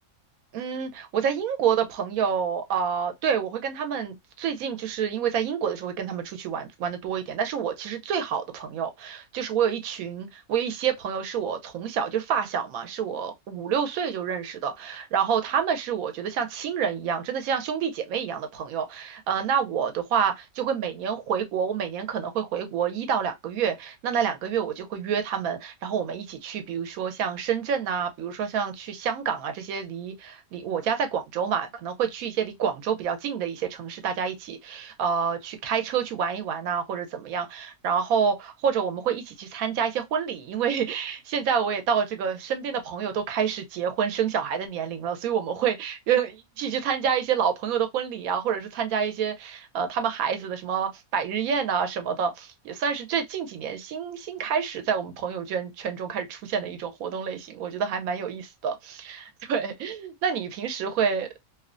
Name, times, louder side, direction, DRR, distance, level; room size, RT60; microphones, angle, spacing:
voice 1, 0.5-61.3, right 7 dB, 85° right, 1.0 m, -28 dB
2.8 x 2.1 x 2.4 m
omnidirectional pair, 1.5 m